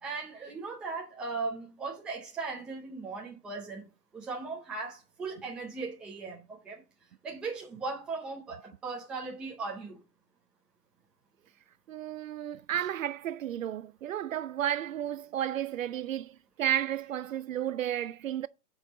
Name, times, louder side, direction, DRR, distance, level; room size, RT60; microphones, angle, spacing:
voice 1, 0.0-3.9 4.1-6.8 7.2-10.0, right 4 dB, ahead, 0.5 m, -38 dB
voice 2, 11.9-18.5, right 10 dB, 60° right, 0.5 m, -32 dB
8.8 x 5.5 x 5.4 m
hypercardioid pair, 150°, 46 cm